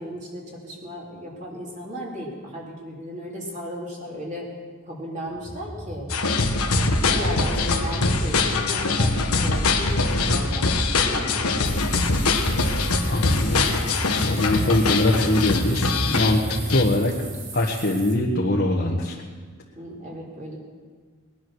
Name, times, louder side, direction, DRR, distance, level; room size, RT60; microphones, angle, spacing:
voice 1, 0.0-4.5 4.9-6.1 6.7-12.1 19.8-20.6, equal, 35° right, -3 dB, 3.4 m, -35 dB
sound 1, 5.3-17.0, equal, 15° right, 1.0 m, -33 dB
sound 2, 6.1-16.8, left 3 dB, 85° left, 1.4 m, -23 dB
sound 3, 11.6-18.2, right 4 dB, 60° right, 2.8 m, -41 dB
voice 2, 13.1-13.8 14.2-16.4 16.7-17.1 17.5-19.1, left 1 dB, 45° left, -2 dB, 1.4 m, -22 dB
20.5 x 11.0 x 6.3 m, 1.5 s
head